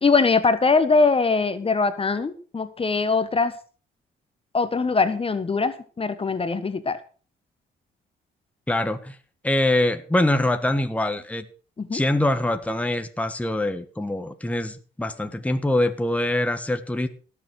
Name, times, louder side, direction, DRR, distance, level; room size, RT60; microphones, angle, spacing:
voice 1, 0.0-3.5 4.5-7.0 11.8-12.0, left 4 dB, 30° left, 11 dB, 1.3 m, -22 dB
voice 2, 8.7-9.2 9.4-11.4 11.9-17.1, left 1 dB, 5° left, 8 dB, 1.3 m, -24 dB
18.0 x 7.1 x 6.4 m, 0.39 s
cardioid pair, 90°, 20 cm